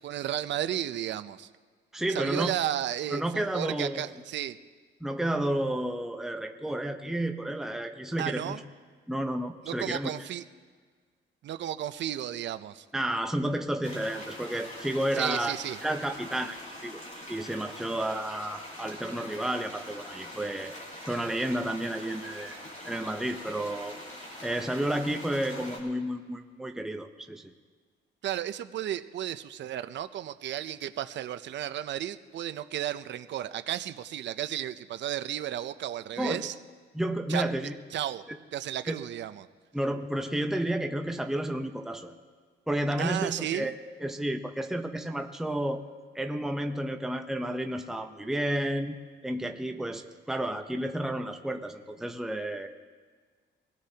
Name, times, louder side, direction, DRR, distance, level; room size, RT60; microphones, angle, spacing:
voice 1, 0.0-1.5 2.1-4.6 8.2-8.6 9.6-10.4 11.4-12.9 15.1-15.8 28.2-36.5 37.3-37.5 37.9-38.2 38.5-39.5 43.0-43.7, right 11 dB, 65° right, 11 dB, 0.6 m, -33 dB
voice 2, 1.9-2.5 3.1-4.1 5.0-8.6 9.1-10.1 12.9-15.5 15.8-16.6 16.8-17.0 17.3-20.7 21.0-24.0 24.4-27.5 36.2-36.5 36.9-37.7 38.3-38.4 38.9-39.0 39.7-42.2 42.7-43.7 44.0-45.8 46.1-49.0 49.2-52.7, right 1 dB, ahead, 5 dB, 0.8 m, -31 dB
sound 1, 13.8-25.8, left 1 dB, 40° left, 4.6 m, -44 dB
23.5 x 16.0 x 2.9 m, 1.5 s
cardioid pair, 90°, 20 cm